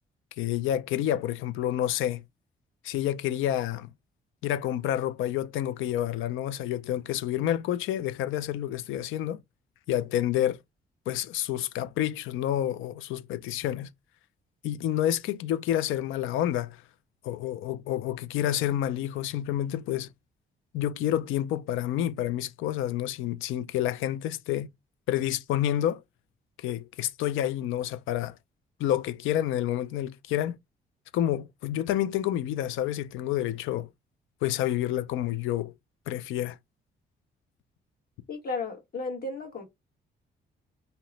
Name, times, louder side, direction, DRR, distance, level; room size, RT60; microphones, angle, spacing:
voice 1, 0.4-2.2 2.8-3.9 4.4-9.4 9.9-10.6 11.1-13.9 14.6-16.8 17.2-20.1 20.7-24.7 25.1-26.0 26.6-28.3 28.8-30.6 31.1-33.9 34.4-35.7 36.1-36.6, left 12 dB, 85° left, 0.4 m, -29 dB
voice 2, 38.3-39.7, left 3 dB, 50° left, 1.3 m, -34 dB
2.8 x 2.1 x 3.9 m
cardioid pair, 90°, 20 cm